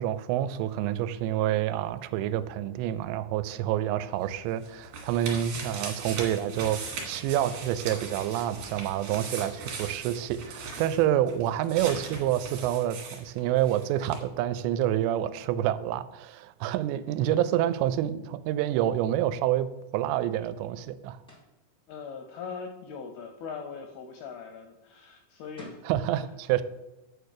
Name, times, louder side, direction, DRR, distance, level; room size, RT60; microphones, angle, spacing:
voice 1, 0.0-19.7 19.9-21.2 25.8-26.6, right 12 dB, 90° right, 14 dB, 2.8 m, -28 dB
sound 1, 4.2-13.8 14.1-14.2, right 4 dB, 55° right, 2.7 m, -39 dB
sound 2, 21.3-21.6 25.2-25.3 25.6-25.9, left 2 dB, 5° left, 0.5 m, -49 dB
voice 2, 21.9-25.8, left 5 dB, 80° left, 5 dB, 2.2 m, -40 dB
9.2 x 4.6 x 6.5 m, 0.97 s
omnidirectional pair, 5.0 m